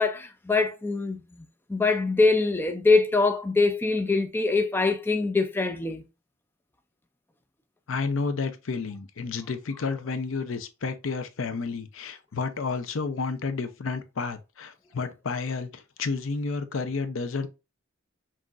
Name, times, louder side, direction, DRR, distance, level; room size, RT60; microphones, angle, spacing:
voice 1, 0.0-6.0, left 3 dB, 10° left, 0.3 m, -24 dB
voice 2, 7.9-17.5, left 4 dB, 90° left, 0.6 m, -31 dB
5.9 x 2.5 x 2.4 m
head